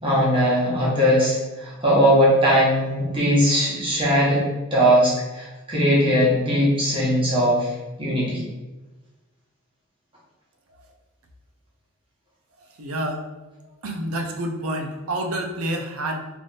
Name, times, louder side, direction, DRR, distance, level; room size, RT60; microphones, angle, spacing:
voice 1, 0.0-4.4 4.7-7.7 8.0-8.4, equal, 25° right, -6 dB, 1.2 m, -19 dB
voice 2, 12.8-13.3 13.6-16.3, right 1 dB, 80° right, 4 dB, 0.6 m, -29 dB
3.3 x 2.6 x 4.0 m, 1.2 s
head